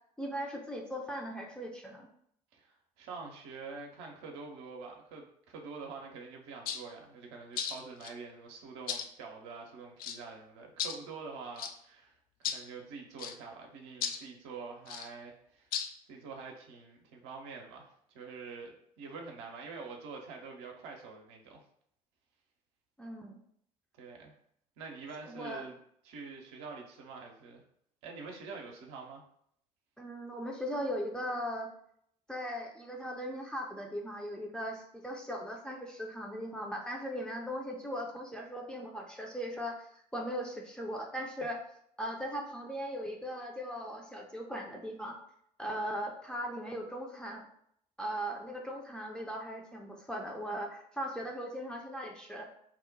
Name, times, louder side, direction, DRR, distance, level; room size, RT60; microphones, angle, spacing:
voice 1, 0.2-2.1 23.0-23.4 25.3-25.7 30.0-31.7 32.3-41.6 42.0-45.2 45.6-47.5 48.0-52.5, equal, 5° left, 0 dB, 0.6 m, -38 dB
voice 2, 2.5-12.1 12.4-15.7 16.1-21.6 24.0-24.3 24.8-25.8 26.0-27.6 28.0-29.2, right 4 dB, 60° right, 1 dB, 0.7 m, -46 dB
sound 1, 6.7-6.8 7.6-8.1 8.9-9.1 10.0-10.2 10.8-11.0 11.6-11.7 12.4-12.6 13.2-13.3 14.0-14.2 14.9-15.1 15.7-15.9, left 7 dB, 50° left, 0.4 m, -35 dB
2.8 x 2.1 x 3.9 m, 0.69 s
figure-of-eight pair, 55°, 20 cm